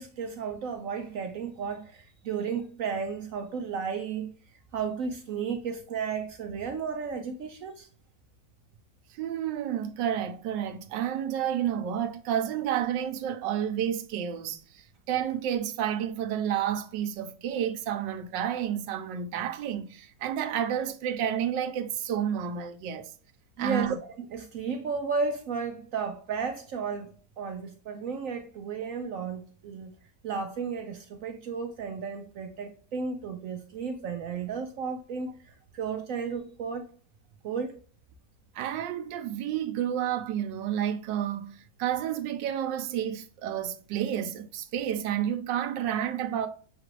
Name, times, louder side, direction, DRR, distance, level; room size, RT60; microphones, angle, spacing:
voice 1, 0.0-4.3 4.7-7.9 23.6-29.9 30.2-36.9 37.4-37.8, right 5 dB, 70° right, 0.8 m, -33 dB
voice 2, 9.2-23.1 23.6-24.0 38.5-46.5, right 10 dB, 85° right, 1.3 m, -30 dB
6.4 x 2.5 x 3.0 m
omnidirectional pair, 1.9 m